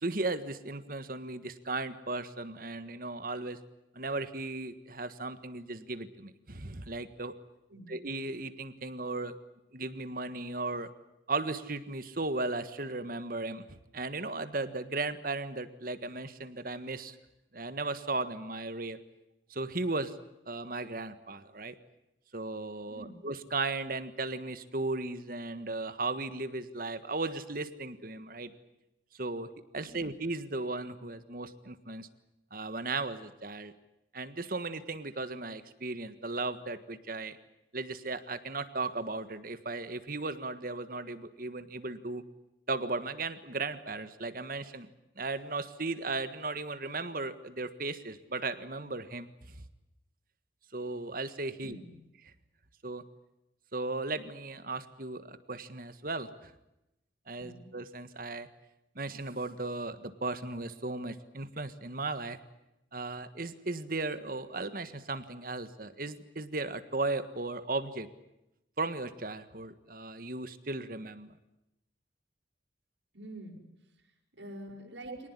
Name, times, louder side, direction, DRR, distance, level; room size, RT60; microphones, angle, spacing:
voice 1, 0.0-3.6 3.9-7.3 7.9-9.4 9.7-10.9 11.3-17.2 17.5-19.0 19.5-20.1 20.5-21.7 22.3-28.5 29.1-29.5 29.7-32.1 32.5-33.7 34.1-37.4 37.7-42.2 42.7-44.9 45.2-49.3 50.7-51.8 52.8-53.0 53.7-56.5 57.3-58.5 58.9-62.4 62.9-68.1 68.8-71.3 75.1-75.2, right 3 dB, 50° right, 11 dB, 1.6 m, -36 dB
voice 2, 22.9-23.2 29.8-30.2 51.6-52.1 57.4-57.7 73.1-75.3, right 1 dB, 75° right, 2 dB, 6.4 m, -47 dB
25.5 x 19.0 x 9.9 m, 0.91 s
head